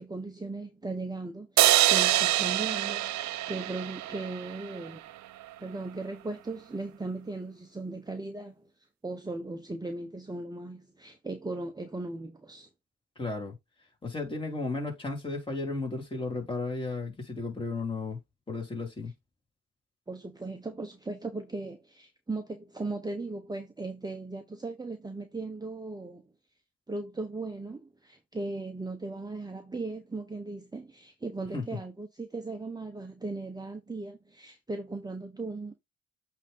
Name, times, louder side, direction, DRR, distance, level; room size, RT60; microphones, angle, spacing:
voice 1, 0.0-5.1 5.6-8.6 9.0-12.7 20.1-26.3 26.9-35.8, right 2 dB, 15° right, 1.0 m, -37 dB
sound 1, 1.6-4.9, right 14 dB, 70° right, 0.6 m, -25 dB
voice 2, 13.2-13.6 14.0-18.2 18.5-19.1 31.5-31.6, left 3 dB, 15° left, 3.7 m, -34 dB
8.3 x 3.7 x 3.8 m
cardioid pair, 90°, 30 cm